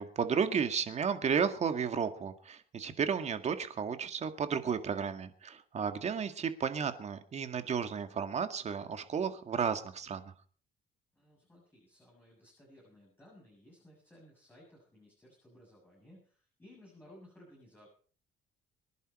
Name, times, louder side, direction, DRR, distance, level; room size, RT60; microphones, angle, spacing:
voice 1, 0.0-10.3, right 6 dB, 40° right, 8 dB, 2.0 m, -33 dB
voice 2, 11.2-17.9, left 1 dB, 10° left, -3 dB, 7.6 m, -58 dB
24.5 x 11.0 x 4.3 m, 0.43 s
cardioid pair, 110°, 17 cm